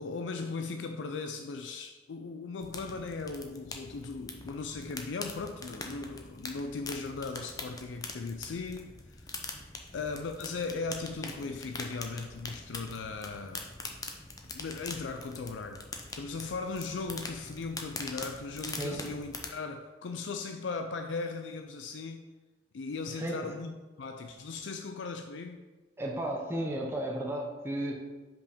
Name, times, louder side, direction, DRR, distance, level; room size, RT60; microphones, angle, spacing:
voice 1, 0.0-9.4 9.9-13.7 14.5-22.2 22.7-25.6, left 4 dB, 80° left, 6 dB, 0.4 m, -38 dB
sound 1, 2.6-19.5, left 3 dB, 20° left, 0.7 m, -43 dB
voice 2, 23.1-23.5 26.0-27.9, right 1 dB, 15° right, -1 dB, 0.8 m, -33 dB
5.4 x 5.2 x 5.0 m, 1.2 s
head